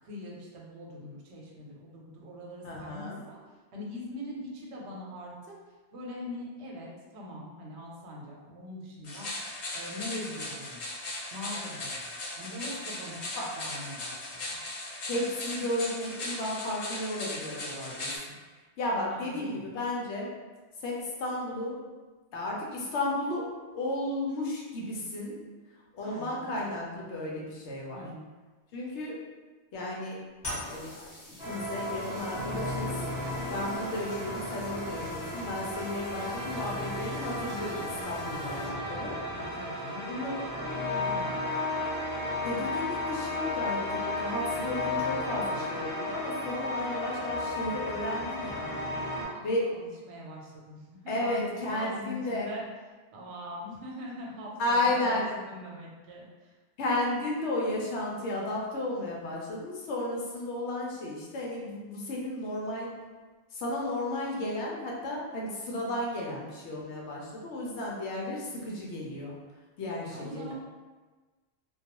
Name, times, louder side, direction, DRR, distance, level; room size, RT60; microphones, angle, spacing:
voice 1, 0.0-3.4 3.7-5.6 5.9-9.3 9.7-10.8 11.3-12.1 12.4-13.3 13.6-14.6 19.1-19.6 26.0-26.6 27.9-28.3 39.3-40.5 40.7-41.4 49.3-52.6 53.1-56.5 70.1-70.5, left 1 dB, 80° right, -3 dB, 0.9 m, -42 dB
voice 2, 2.6-3.2 13.4-13.5 15.1-18.1 18.8-20.3 20.8-21.8 22.3-25.4 25.9-28.0 28.7-29.2 29.7-30.2 30.7-33.0 33.5-39.2 40.1-40.4 42.4-48.7 49.4-49.8 51.1-52.5 54.6-55.3 56.8-63.0 63.5-69.3 69.8-70.5, left 1 dB, 85° left, -3 dB, 0.9 m, -33 dB
sound 1, 9.0-18.2, left 2 dB, 55° left, 0.4 m, -38 dB
sound 2, 30.4-39.0, left 1 dB, 25° left, 0.9 m, -46 dB
sound 3, 31.4-49.2, left 2 dB, 5° right, 0.8 m, -34 dB
2.3 x 2.2 x 2.9 m, 1.3 s
omnidirectional pair, 1.1 m